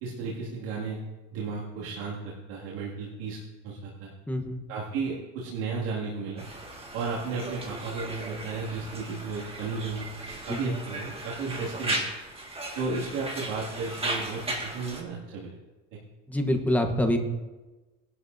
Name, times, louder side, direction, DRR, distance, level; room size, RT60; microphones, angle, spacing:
voice 1, 0.0-1.0 1.3-4.1 4.7-6.4 6.9-10.1 10.5-12.0 12.8-15.6 15.9-16.0, right 4 dB, 80° right, -6 dB, 2.3 m, -34 dB
voice 2, 4.3-4.6 10.5-10.7 16.3-17.2, left 1 dB, 5° left, 4 dB, 1.0 m, -26 dB
Conversation, 6.4-15.0, right 2 dB, 15° right, 1.8 m, -36 dB
19.5 x 11.5 x 2.7 m, 1.2 s
cardioid pair, 140°, 34 cm